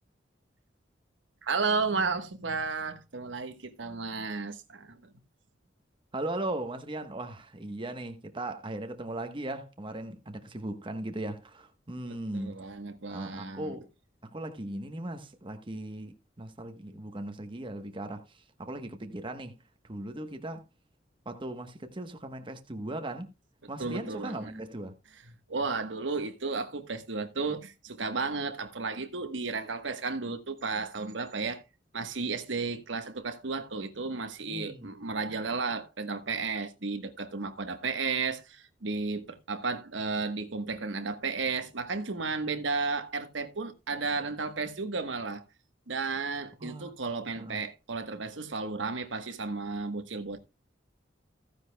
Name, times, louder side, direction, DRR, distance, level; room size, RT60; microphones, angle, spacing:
voice 1, 1.4-5.1 12.3-13.7 23.8-24.5 25.5-31.6 31.9-45.4 45.9-50.4, right 4 dB, 80° right, 1.3 m, -33 dB
voice 2, 6.1-12.6 13.1-13.9 14.2-19.6 19.9-20.6 21.2-23.3 23.7-24.9 34.4-34.9 46.6-46.9 47.2-47.6, right 1 dB, 25° right, 1.1 m, -38 dB
15.0 x 9.8 x 2.2 m
head